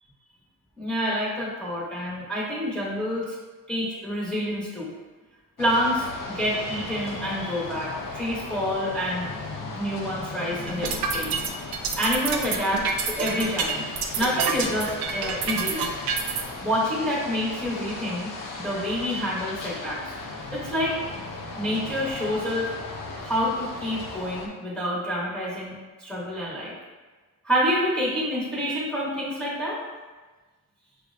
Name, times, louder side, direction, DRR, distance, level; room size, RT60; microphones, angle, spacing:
voice 1, 0.8-3.4 3.7-4.9 5.6-9.3 9.7-11.4 12.0-15.9 16.6-20.2 20.5-21.0 21.5-22.7 23.2-25.7 26.0-26.7 27.4-29.8, equal, 5° left, -8 dB, 0.8 m, -28 dB
sound 1, 5.6-24.5, left 3 dB, 60° left, 0.6 m, -37 dB
sound 2, 10.7-16.4, right 6 dB, 85° right, 0.5 m, -27 dB
5.5 x 2.1 x 2.5 m, 1.3 s
cardioid pair, 120°, 36 cm